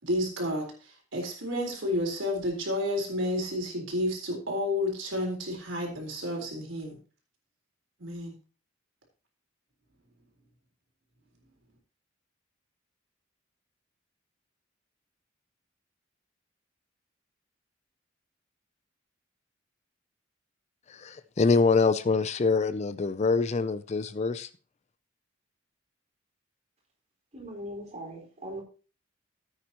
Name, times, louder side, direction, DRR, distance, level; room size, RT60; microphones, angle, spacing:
voice 1, 0.0-7.0 8.0-8.3, left 1 dB, 75° right, 1 dB, 3.9 m, -31 dB
voice 2, 20.9-24.5, left 4 dB, 35° left, 14 dB, 0.4 m, -25 dB
voice 3, 27.3-28.6, equal, 35° right, -2 dB, 4.7 m, -40 dB
14.5 x 8.8 x 2.9 m, 0.36 s
head